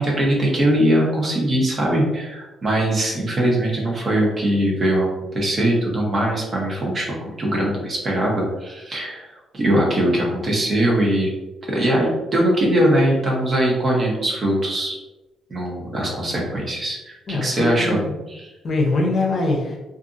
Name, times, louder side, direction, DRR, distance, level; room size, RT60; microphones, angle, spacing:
voice 1, 0.0-9.3 9.5-11.3 11.7-15.0 15.5-18.0, right 1 dB, 40° right, -2 dB, 0.8 m, -21 dB
voice 2, 17.3-18.1 18.6-19.8, left 2 dB, 50° left, -1 dB, 0.7 m, -22 dB
2.6 x 2.5 x 2.5 m, 1.1 s
cardioid pair, 90°, 0 cm